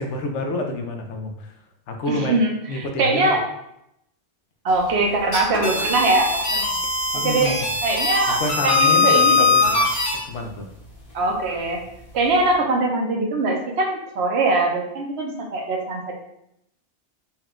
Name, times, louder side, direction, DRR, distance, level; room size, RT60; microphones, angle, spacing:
voice 1, 0.0-1.5 1.9-2.4 2.7-3.3 7.1-7.7 8.3-9.8 10.2-10.7, left 2 dB, 80° left, 4 dB, 0.9 m, -28 dB
voice 2, 2.1-3.4 4.6-6.8 7.1-9.8 11.1-11.8 12.1-16.2, right 2 dB, 70° right, 1 dB, 0.9 m, -22 dB
sound 1, 5.2-10.2, left 4 dB, 60° left, 1.4 m, -21 dB
4.2 x 2.3 x 3.6 m, 0.80 s
omnidirectional pair, 1.2 m